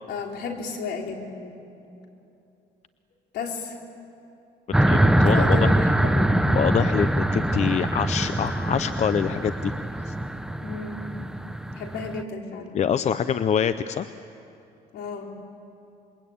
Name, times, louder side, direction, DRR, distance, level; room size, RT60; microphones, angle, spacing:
voice 1, 0.1-1.6 3.3-3.8 5.3-6.5 10.6-11.1 11.7-12.8 14.9-15.3, left 4 dB, 70° left, 2 dB, 3.9 m, -33 dB
sound 1, 4.7-12.2, right 1 dB, 5° right, 0.8 m, -23 dB
voice 2, 4.9-5.7 6.5-9.7 10.1-10.2 12.7-14.1, left 8 dB, 40° left, 12 dB, 0.7 m, -25 dB
27.0 x 22.5 x 8.9 m, 2.7 s
cardioid pair, 110°, 17 cm